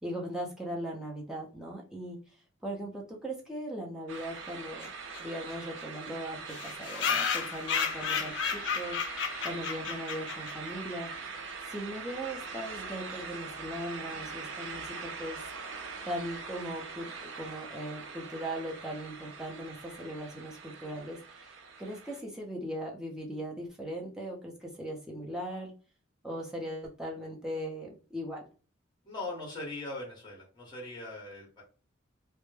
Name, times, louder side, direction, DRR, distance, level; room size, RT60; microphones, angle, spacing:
voice 1, 0.0-2.2 2.6-4.9 5.2-11.1 11.7-15.4 15.7-15.8 16.0-25.7 26.2-28.5, equal, 5° right, -2 dB, 0.5 m, -39 dB
sound 1, 4.1-22.2, right 4 dB, 70° right, 0.5 m, -42 dB
sound 2, 4.8-4.9 5.1-5.2 5.5-5.6 5.8-5.9 6.5-10.7, left 7 dB, 60° left, 0.4 m, -32 dB
voice 2, 29.0-31.6, left 2 dB, 20° left, -3 dB, 0.8 m, -40 dB
2.1 x 2.1 x 3.1 m, 0.36 s
head